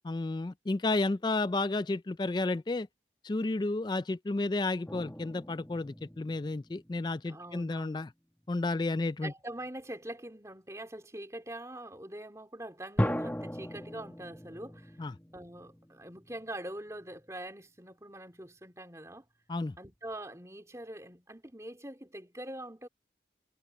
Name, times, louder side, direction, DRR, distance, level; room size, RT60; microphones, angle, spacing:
voice 1, 0.0-2.9 3.2-8.1 8.5-9.3 15.0-15.1 19.5-19.8, left 2 dB, 25° left, 0.3 m, -32 dB
sound 1, 4.9-7.8 8.4-8.7 13.0-17.3, equal, 10° left, 1.2 m, -38 dB
voice 2, 7.3-8.0 9.2-15.0 15.3-19.3 19.8-22.9, right 1 dB, 15° right, 3.6 m, -44 dB
head